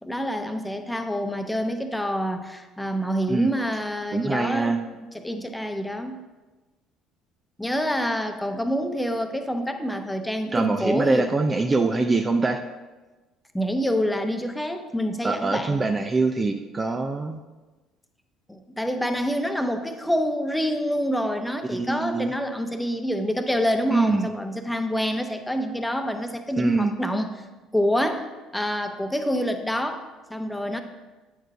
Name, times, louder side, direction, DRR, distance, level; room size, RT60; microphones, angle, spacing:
voice 1, 0.0-4.7 5.1-6.2 7.6-11.3 13.5-15.9 18.5-27.5 27.7-28.3 28.5-30.8, equal, 5° left, 6 dB, 0.9 m, -27 dB
voice 2, 4.1-4.8 10.5-12.6 15.2-17.4 21.7-22.3 23.9-24.3 26.6-26.9, right 3 dB, 25° right, 6 dB, 0.5 m, -24 dB
8.9 x 4.6 x 4.8 m, 1.2 s
hypercardioid pair, 60°, 0 cm